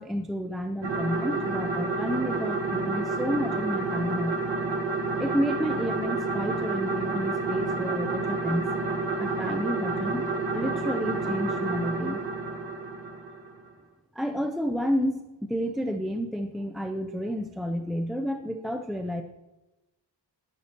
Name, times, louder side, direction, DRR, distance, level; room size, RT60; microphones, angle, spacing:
voice 1, 0.0-4.4 5.2-8.8 9.2-10.3 10.5-12.2 14.1-19.2, equal, ahead, 5 dB, 0.4 m, -30 dB
sound 1, 0.8-13.6, right 3 dB, 80° right, 1.4 m, -29 dB
11.0 x 10.5 x 2.9 m, 1.0 s
wide cardioid pair, 115°, 44 cm